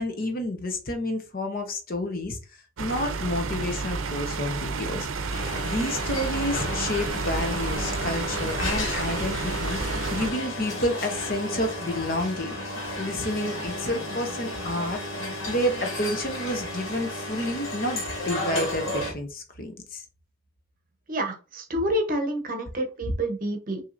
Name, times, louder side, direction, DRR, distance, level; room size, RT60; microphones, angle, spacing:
voice 1, 0.0-2.4 2.8-5.3 5.6-12.5 13.0-15.0 15.5-20.0, left 1 dB, 45° left, 0.8 m, -30 dB
sound 1, 2.8-10.3, right 4 dB, 85° right, 0.6 m, -31 dB
sound 2, 5.3-19.1, left 1 dB, 80° left, 1.6 m, -33 dB
voice 2, 21.1-23.8, right 1 dB, 45° right, 0.9 m, -28 dB
5.9 x 2.8 x 2.6 m
head